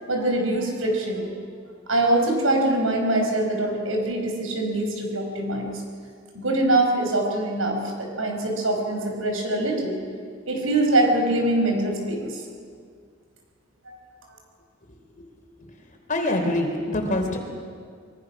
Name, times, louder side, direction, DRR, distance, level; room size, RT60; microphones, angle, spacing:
voice 1, 0.0-1.3 1.9-5.7 6.3-10.0 10.5-12.4 13.9-14.0, right 1 dB, 80° right, 2 dB, 5.2 m, -23 dB
voice 2, 16.1-17.4, left 1 dB, 40° left, 2 dB, 3.4 m, -24 dB
25.0 x 23.5 x 6.1 m, 2.1 s
head